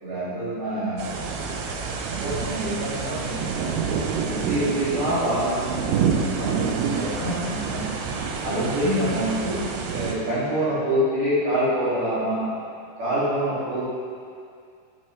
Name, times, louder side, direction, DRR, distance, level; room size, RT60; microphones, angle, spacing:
voice 1, 0.0-1.8 2.2-3.7 4.3-5.8 6.4-7.8 8.4-9.6 9.9-12.5 13.0-13.9, right 1 dB, 60° right, -10 dB, 3.6 m, -26 dB
sound 1, 1.0-10.1, right 6 dB, 85° right, 2.5 m, -28 dB
8.1 x 7.5 x 3.2 m, 2.3 s
omnidirectional pair, 4.3 m